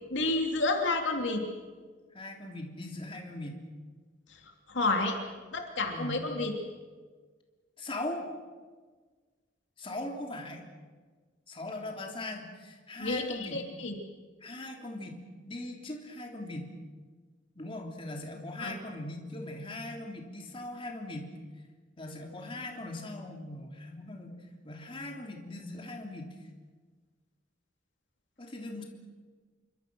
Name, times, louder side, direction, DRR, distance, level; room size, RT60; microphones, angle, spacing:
voice 1, 0.1-1.4 4.7-5.2 5.5-6.5 13.0-13.9 18.6-18.7, left 2 dB, 70° left, 3 dB, 3.0 m, -30 dB
voice 2, 2.1-3.6 5.9-6.2 7.8-8.3 9.8-10.6 11.5-13.6 14.4-16.7 17.5-21.3 22.0-24.4 24.6-26.3 28.4-28.8, left 1 dB, 30° left, 1 dB, 3.3 m, -40 dB
28.0 x 24.0 x 6.3 m, 1.4 s
head